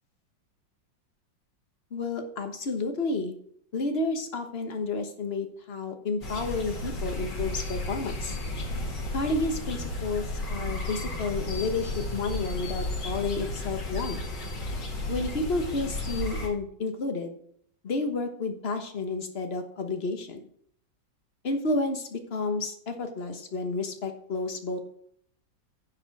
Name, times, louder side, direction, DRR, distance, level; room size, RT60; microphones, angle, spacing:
voice 1, 1.9-3.3 3.7-8.4 9.1-10.2 10.5-14.2 15.1-17.4 17.8-20.4 21.4-24.9, left 3 dB, 40° left, 6 dB, 1.2 m, -31 dB
sound 1, 6.2-16.5, left 1 dB, 65° left, 2.7 m, -33 dB
10.5 x 5.0 x 5.9 m, 0.65 s
omnidirectional pair, 2.0 m